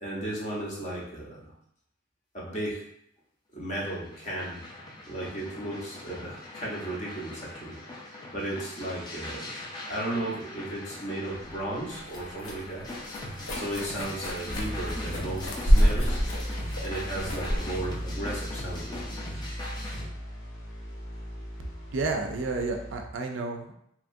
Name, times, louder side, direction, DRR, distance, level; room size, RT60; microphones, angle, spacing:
voice 1, 0.0-1.4 2.3-2.8 3.5-4.6 5.1-7.8 8.3-9.5 9.8-12.9 13.5-16.2 16.8-19.1, right 1 dB, 35° left, -5 dB, 0.7 m, -35 dB
sound 1, 3.9-20.1, left 1 dB, 20° left, 0.3 m, -41 dB
sound 2, 11.4-19.1, equal, 85° left, 0.6 m, -28 dB
sound 3, 14.5-23.0, equal, 65° left, 0.9 m, -38 dB
voice 2, 21.9-23.7, right 3 dB, 60° right, 3 dB, 0.4 m, -31 dB
2.9 x 2.4 x 2.5 m, 0.74 s
head